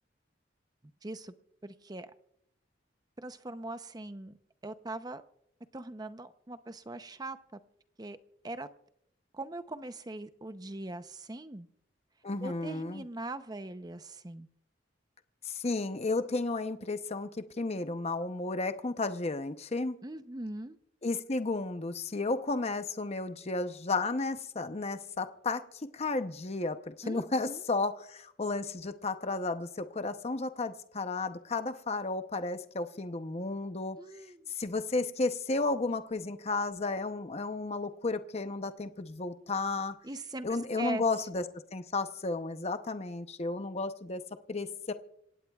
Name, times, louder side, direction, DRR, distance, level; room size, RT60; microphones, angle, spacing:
voice 1, 1.0-1.3 1.6-2.1 3.2-4.3 4.6-5.2 5.7-7.6 8.0-8.2 8.4-8.7 9.3-11.7 12.4-14.5 20.0-20.8 27.0-27.6 34.0-34.5 40.0-41.0, right 2 dB, 20° right, 11 dB, 0.7 m, -41 dB
voice 2, 12.2-13.0 15.4-17.3 17.6-20.0 21.0-34.0 34.6-39.9 40.4-41.4 41.7-44.2 44.5-44.9, left 3 dB, 35° left, 9 dB, 0.8 m, -33 dB
27.0 x 16.5 x 2.4 m, 0.76 s
head